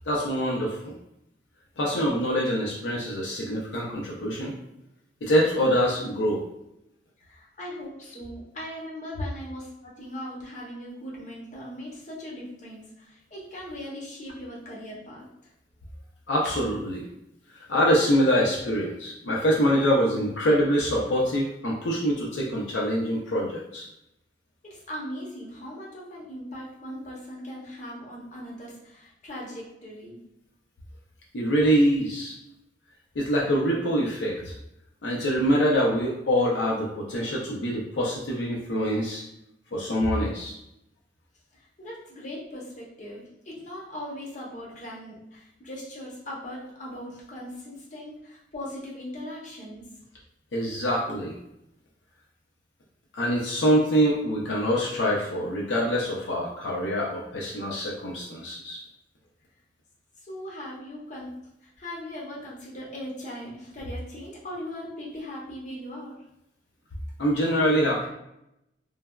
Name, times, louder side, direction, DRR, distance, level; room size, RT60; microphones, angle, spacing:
voice 1, 0.1-1.0 1.8-4.6 5.2-6.4 16.3-17.1 17.7-23.9 31.3-32.3 33.2-34.5 35.0-39.2 39.7-40.5 50.5-51.3 53.1-58.8 67.2-68.1, equal, 80° left, -3 dB, 0.5 m, -25 dB
voice 2, 7.2-15.5 24.6-30.2 41.6-49.9 60.2-61.4 61.6-66.2, equal, 40° left, -4 dB, 0.7 m, -39 dB
3.2 x 2.2 x 2.2 m, 0.84 s
head